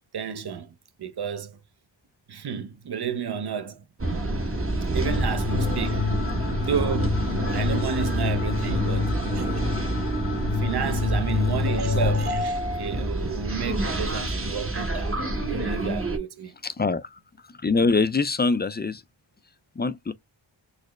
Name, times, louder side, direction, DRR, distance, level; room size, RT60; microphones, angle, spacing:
voice 1, 0.1-1.6 2.3-3.8 4.9-6.1 6.6-7.2 7.5-9.5 10.6-15.2 15.5-16.5, right 7 dB, 55° right, 0.6 m, -31 dB
athens metro, 4.0-16.2, right 1 dB, 30° right, 0.8 m, -28 dB
sound 1, 5.0-12.4, left 5 dB, 70° left, 0.9 m, -28 dB
voice 2, 16.6-17.2 17.6-19.0 19.8-20.1, left 4 dB, 25° left, 0.3 m, -24 dB
4.0 x 2.1 x 3.1 m
wide cardioid pair, 50°, 46 cm